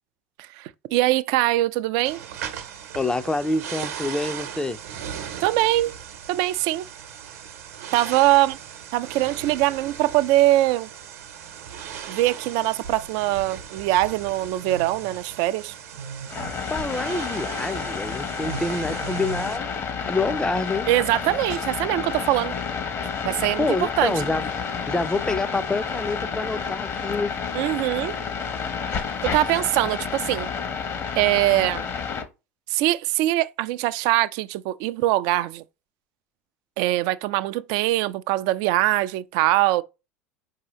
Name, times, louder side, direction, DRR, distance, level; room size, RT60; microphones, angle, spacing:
voice 1, 0.4-2.2 5.4-5.9 6.3-6.9 7.9-8.6 8.9-10.9 12.1-15.7 20.9-22.5 23.2-24.1 27.5-28.2 29.2-30.5 31.1-31.8 32.7-35.6 36.8-39.8, right 16 dB, 60° right, 0.4 m, -22 dB
sound 1, 2.0-19.6, right 8 dB, 75° right, 0.9 m, -37 dB
voice 2, 2.9-4.8 16.7-19.7 20.0-20.9 23.6-24.5 24.9-27.3, left 2 dB, 10° left, 0.5 m, -26 dB
sound 2, 16.3-32.2, left 6 dB, 35° left, 1.0 m, -30 dB
4.7 x 2.8 x 3.0 m
hypercardioid pair, 80°, 8 cm